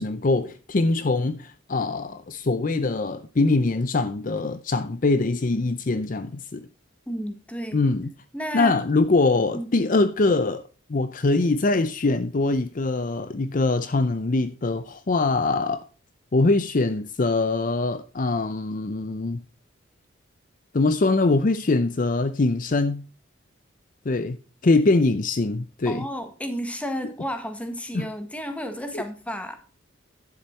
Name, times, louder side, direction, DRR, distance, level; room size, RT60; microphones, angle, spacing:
voice 1, 0.0-6.7 7.7-8.1 8.5-10.6 10.9-15.8 16.3-19.4 20.7-23.0 24.1-24.4 24.6-26.0 27.9-28.1 28.9-29.0, left 3 dB, 40° left, 0.5 m, -23 dB
voice 2, 7.1-7.8 8.3-8.7 9.5-9.8 25.8-29.6, equal, 5° left, 1.4 m, -32 dB
11.0 x 7.1 x 4.5 m
head